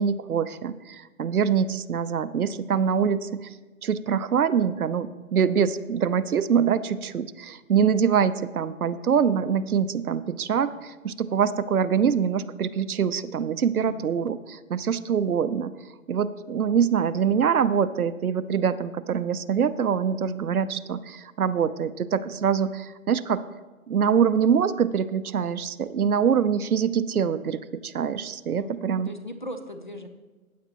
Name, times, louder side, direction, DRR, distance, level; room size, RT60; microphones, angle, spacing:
voice 1, 0.0-3.5 3.8-15.7 16.1-23.4 23.9-29.1, right 7 dB, 75° right, 13 dB, 0.7 m, -24 dB
voice 2, 13.8-14.1 28.6-30.1, left 1 dB, 35° left, 7 dB, 0.6 m, -39 dB
15.5 x 9.4 x 2.9 m, 1.2 s
hypercardioid pair, 175°, 44 cm